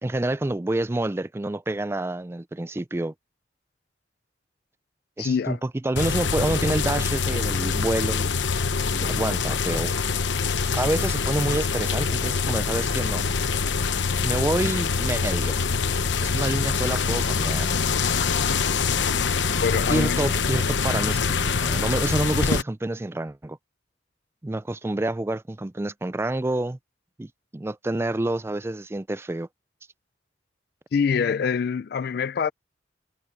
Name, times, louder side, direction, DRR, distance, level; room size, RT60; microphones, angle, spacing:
voice 1, 0.0-3.1 5.2-8.3 8.9-9.9 10.8-13.3 14.2-15.6 16.2-17.7 19.9-23.6 24.4-26.8 27.2-29.5, right 1 dB, 15° right, 0.4 m, -28 dB
voice 2, 5.2-5.6 19.6-20.3 30.9-32.5, left 6 dB, 55° left, 0.3 m, -25 dB
sound 1, 6.0-22.6, left 5 dB, 80° left, 0.9 m, -24 dB
head